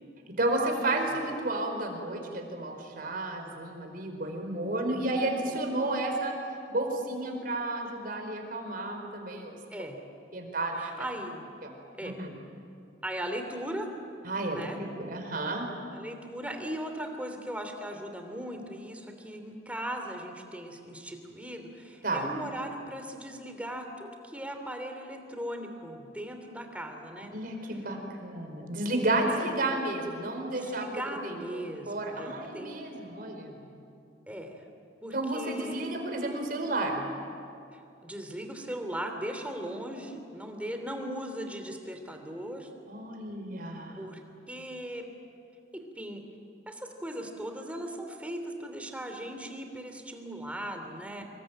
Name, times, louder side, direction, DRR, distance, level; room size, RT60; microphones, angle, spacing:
voice 1, 0.4-6.3 6.7-9.6 10.3-10.9 11.6-11.7 12.0-12.3 14.2-14.6 15.0-15.7 22.0-22.3 27.3-30.9 31.2-33.6 35.1-37.0 42.9-44.0, right 2 dB, 50° right, 3 dB, 4.7 m, -32 dB
voice 2, 10.8-11.5 12.0-12.3 13.0-13.9 14.5-14.8 15.9-27.3 29.3-29.5 30.5-32.7 34.3-34.6 35.0-35.9 37.7-42.7 43.9-44.2 44.5-45.0 45.7-46.2 46.7-51.2, equal, 10° right, 4 dB, 3.0 m, -38 dB
26.5 x 23.0 x 9.1 m, 2.5 s
head